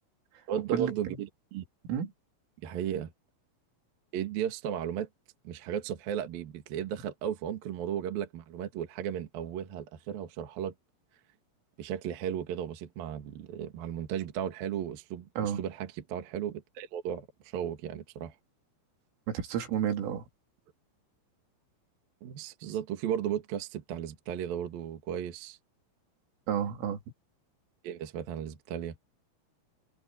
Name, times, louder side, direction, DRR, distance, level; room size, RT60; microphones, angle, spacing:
voice 1, 0.5-1.7 2.6-3.1 4.1-5.1 5.4-10.7 11.8-18.3 22.2-25.6 27.8-29.0, right 9 dB, 55° right, 3.1 m, -35 dB
voice 2, 19.3-20.3 26.5-27.0, right 9 dB, 75° right, 5.4 m, -30 dB
open air
omnidirectional pair, 5.9 m